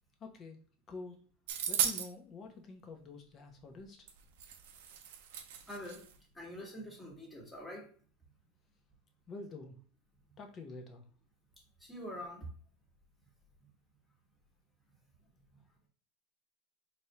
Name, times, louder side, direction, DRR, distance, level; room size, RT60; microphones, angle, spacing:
voice 1, 0.2-0.6 0.9-1.2 1.7-4.1 9.3-9.8 10.4-11.0, left 3 dB, 30° left, 3 dB, 1.0 m, -47 dB
sound 1, 1.5-2.1 4.1-4.2 4.4-6.1, right 9 dB, 75° right, 0.7 m, -36 dB
voice 2, 5.7-6.0 6.3-7.9 11.8-12.5, equal, 10° left, -3 dB, 1.6 m, -45 dB
4.2 x 3.3 x 3.0 m, 0.44 s
supercardioid pair, 145°, 0 cm